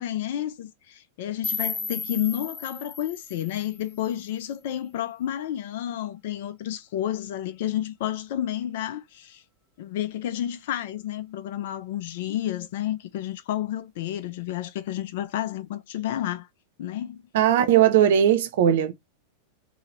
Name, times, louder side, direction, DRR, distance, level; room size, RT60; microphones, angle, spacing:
voice 1, 0.0-9.4 9.8-16.5 16.8-17.2, left 12 dB, 55° left, 0.4 m, -30 dB
sound 1, 1.4-4.4, left 4 dB, 10° left, 0.6 m, -34 dB
voice 2, 17.3-18.9, right 10 dB, 55° right, 0.5 m, -19 dB
2.8 x 2.7 x 4.3 m
figure-of-eight pair, 90°, 0 cm